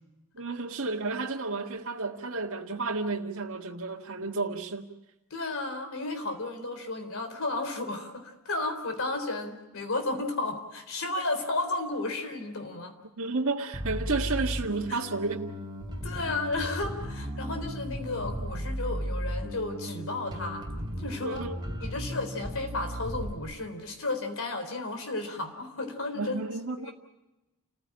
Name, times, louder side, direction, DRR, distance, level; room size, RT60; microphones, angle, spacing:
voice 1, 0.3-4.9 13.2-15.6 21.2-21.6 26.2-26.9, right 3 dB, 65° right, 1.8 m, -32 dB
voice 2, 5.3-13.0 14.9-15.0 16.0-20.7 21.0-21.4 21.8-26.4 26.8-26.9, left 2 dB, 65° left, 3.9 m, -33 dB
Bass guitar, 13.7-23.3, equal, 20° right, 3.2 m, -35 dB
29.5 x 15.0 x 8.8 m
head